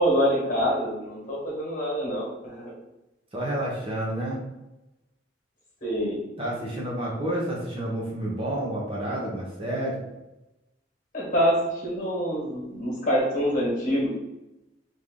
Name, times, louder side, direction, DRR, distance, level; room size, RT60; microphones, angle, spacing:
voice 1, 0.0-2.7 5.8-6.2 11.1-11.6 11.8-14.1, equal, 45° left, -4 dB, 1.4 m, -25 dB
voice 2, 3.3-4.4 6.4-10.0, right 1 dB, 30° right, -4 dB, 0.9 m, -29 dB
3.2 x 2.7 x 3.7 m, 0.96 s
head